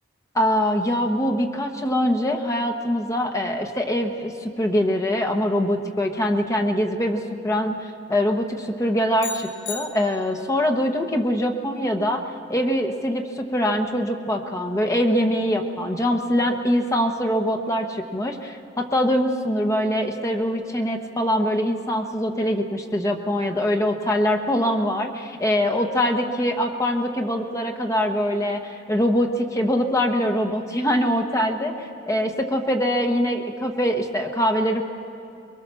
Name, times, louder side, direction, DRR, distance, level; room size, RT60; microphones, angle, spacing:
voice 1, 0.3-12.2 12.5-34.8, equal, 15° left, 3 dB, 1.1 m, -23 dB
sound 1, 9.2-10.6, left 6 dB, 75° left, 1.1 m, -36 dB
23.0 x 22.5 x 6.9 m, 2.7 s
head